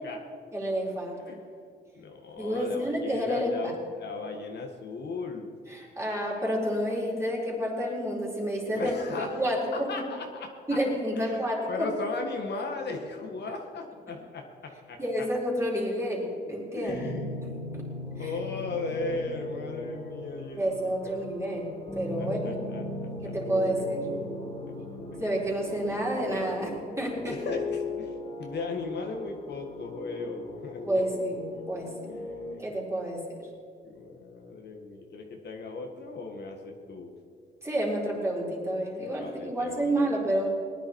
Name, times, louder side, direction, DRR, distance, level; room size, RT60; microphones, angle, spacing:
voice 1, 0.5-1.2 2.4-3.7 5.7-9.9 10.7-11.9 15.0-17.1 17.4-17.8 18.2-18.3 20.5-22.6 23.2-24.1 25.2-27.4 30.8-31.9 32.6-33.2 37.6-40.5, equal, 15° right, -3 dB, 4.4 m, -29 dB
voice 2, 1.1-1.5 1.9-5.5 8.8-9.4 9.7-10.7 11.2-14.4 14.9-15.0 16.7-17.5 18.2-21.3 22.2-22.8 23.2-23.3 26.5-26.7 27.3-30.8 32.1-32.6 33.8-37.1 39.2-40.1, left 3 dB, 60° left, 2 dB, 1.8 m, -37 dB
sound 1, 16.9-32.5, left 2 dB, 30° left, 3.3 m, -38 dB
19.0 x 10.5 x 4.7 m, 2.3 s
cardioid pair, 90°, 20 cm